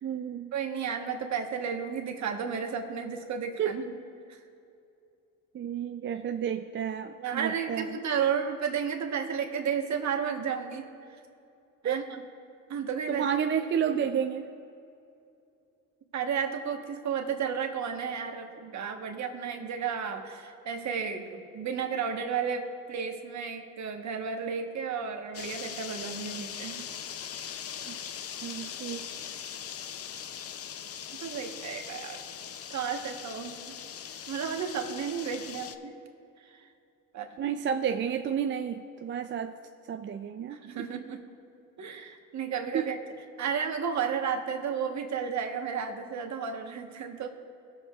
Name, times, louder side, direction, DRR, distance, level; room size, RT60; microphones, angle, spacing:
voice 1, 0.0-0.5 3.6-3.8 5.5-8.0 11.8-12.1 13.1-14.5 27.9-28.0 28.4-29.1 37.4-39.6 39.8-40.6 42.7-42.9, right 8 dB, 35° right, 6 dB, 0.4 m, -31 dB
voice 2, 0.5-3.8 4.3-4.4 7.2-10.9 11.8-12.2 12.7-13.2 16.1-26.9 31.1-32.2 32.7-33.7 34.3-35.9 36.5-36.6 37.1-37.3 40.5-41.2 41.8-43.0 43.4-47.3, right 7 dB, 55° right, 4 dB, 1.2 m, -33 dB
sound 1, 25.3-35.8, left 8 dB, 45° left, 0.5 m, -40 dB
21.0 x 7.3 x 2.4 m, 2.6 s
cardioid pair, 90°, 35 cm